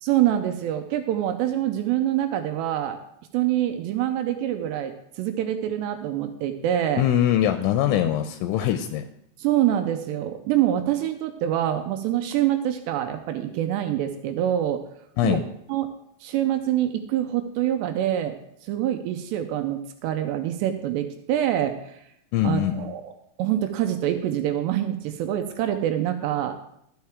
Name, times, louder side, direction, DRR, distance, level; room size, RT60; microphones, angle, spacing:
voice 1, 0.0-3.0 3.3-7.0 9.4-14.8 15.2-15.4 15.7-15.9 16.2-18.4 18.6-21.8 22.4-23.1 23.4-26.7, right 11 dB, 85° right, 7 dB, 2.5 m, -25 dB
voice 2, 7.0-9.0 15.2-15.4 22.3-22.9, left 11 dB, 85° left, 8 dB, 2.9 m, -22 dB
12.5 x 8.9 x 3.6 m, 0.73 s
omnidirectional pair, 5.5 m